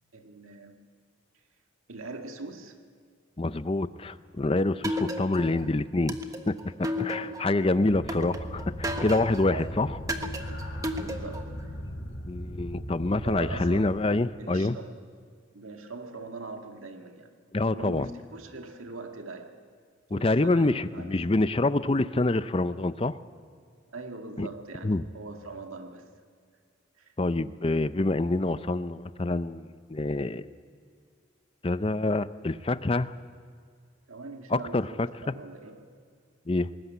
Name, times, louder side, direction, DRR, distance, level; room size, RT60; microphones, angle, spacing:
voice 1, 0.1-0.8 1.9-2.8 4.1-4.2 7.2-8.0 9.5-9.7 10.9-11.7 13.2-13.9 14.3-15.0 15.5-17.3 17.7-19.5 20.1-21.2 23.9-26.1 27.0-27.1 34.1-35.8, right 3 dB, 90° right, 4 dB, 2.0 m, -42 dB
voice 2, 3.4-6.2 6.5-9.9 12.2-14.8 17.5-18.1 20.1-23.2 24.4-24.5 24.8-25.0 27.2-30.4 31.6-33.1 34.5-35.1 36.5-36.7, left 2 dB, 25° left, 14 dB, 0.5 m, -26 dB
sound 1, 4.8-5.6 6.1-7.5 8.1-9.5 10.1-11.5, equal, 15° right, 1.2 m, -33 dB
sound 2, 7.9-13.7, equal, 65° left, 5.4 m, -38 dB
20.0 x 19.0 x 9.3 m, 2.1 s
head